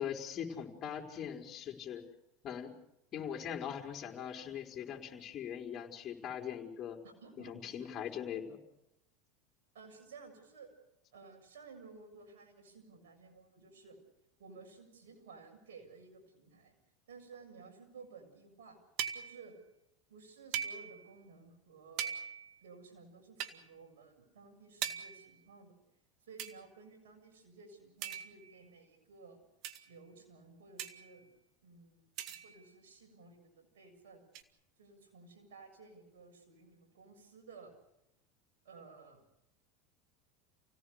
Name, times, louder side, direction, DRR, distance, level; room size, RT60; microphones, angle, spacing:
voice 1, 0.0-2.0 2.4-2.7 3.1-7.0 7.4-8.6, left 8 dB, 40° left, 2 dB, 4.5 m, -41 dB
voice 2, 7.0-7.9 9.7-10.7 11.1-14.0 14.4-16.7 17.1-18.8 19.1-19.6 20.1-22.1 22.6-25.8 26.2-29.4 29.9-31.3 31.6-32.1 32.4-34.2 34.8-37.7 38.6-39.3, right 4 dB, 80° right, 3 dB, 7.2 m, -55 dB
sound 1, 19.0-19.5 20.5-21.1 22.0-22.6 23.4-23.6 24.8-25.3 26.4-26.6 28.0-28.6 29.6-29.9 30.8-31.2 32.2-32.7 34.3-34.4, right 9 dB, 55° right, 2.0 m, -40 dB
29.5 x 17.5 x 6.7 m, 0.84 s
hypercardioid pair, 95°, 0 cm